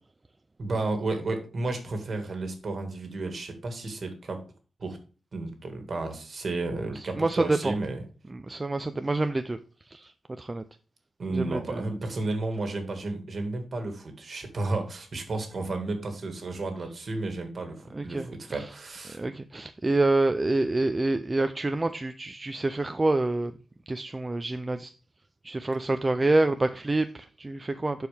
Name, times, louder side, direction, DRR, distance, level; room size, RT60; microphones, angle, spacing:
voice 1, 0.6-4.4 4.8-5.0 5.3-8.0 11.2-19.2, right 2 dB, 50° right, 5 dB, 1.8 m, -32 dB
voice 2, 6.9-7.8 8.3-9.6 9.9-10.6 11.3-11.8 17.9-18.7 19.1-23.6 23.9-24.9 25.4-28.1, right 2 dB, 20° right, 9 dB, 0.4 m, -27 dB
11.5 x 4.6 x 3.4 m, 0.36 s
wide cardioid pair, 120°, 0 cm